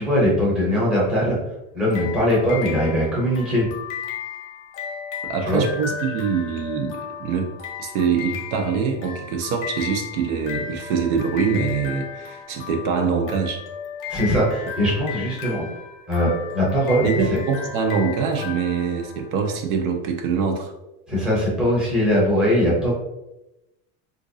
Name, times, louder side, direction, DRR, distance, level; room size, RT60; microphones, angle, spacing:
voice 1, 0.0-1.4 1.7-3.7 5.5-5.6 14.1-15.7 16.1-17.4 21.1-22.9, equal, ahead, -7 dB, 0.7 m, -21 dB
sound 1, 1.9-19.6, left 8 dB, 30° left, 0.7 m, -35 dB
voice 2, 5.2-7.5 7.8-13.6 17.0-20.7, right 6 dB, 75° right, 4 dB, 0.7 m, -24 dB
3.8 x 2.6 x 2.6 m, 0.93 s
cardioid pair, 170°, 43 cm